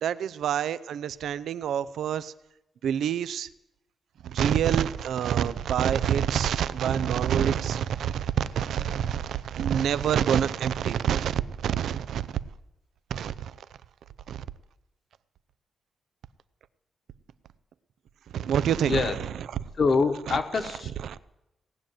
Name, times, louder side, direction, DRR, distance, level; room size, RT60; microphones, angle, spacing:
voice 1, 0.0-2.3 2.8-3.5 4.2-12.3 13.1-13.5 14.3-14.4 18.3-19.1 20.3-20.4 21.0-21.2, right 9 dB, 85° right, 16 dB, 0.5 m, -27 dB
voice 2, 18.9-19.2 19.8-20.9, left 4 dB, 45° left, 7 dB, 1.3 m, -25 dB
18.0 x 7.7 x 9.1 m, 0.91 s
cardioid pair, 105°, 0 cm